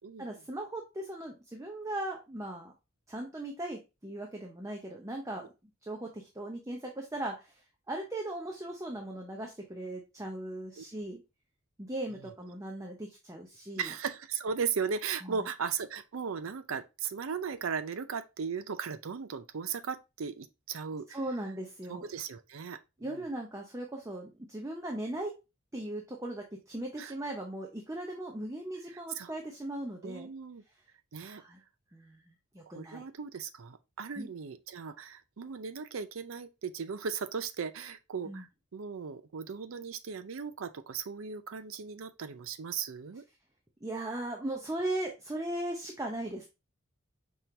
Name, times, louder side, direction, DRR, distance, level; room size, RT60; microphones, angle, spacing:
voice 1, 0.2-2.7 3.1-5.5 5.8-7.6 7.9-11.2 11.8-13.9 15.2-15.5 21.1-22.0 23.0-25.3 25.7-30.3 31.1-31.6 31.9-33.0 34.2-34.3 38.3-38.4 43.8-46.5, right 1 dB, 15° right, 0.7 m, -38 dB
voice 2, 13.8-21.2 21.9-23.2 27.0-27.1 29.2-29.3 30.0-30.6 31.1-31.4 32.7-43.2, right 6 dB, 70° right, 0.5 m, -37 dB
5.4 x 3.0 x 3.2 m
head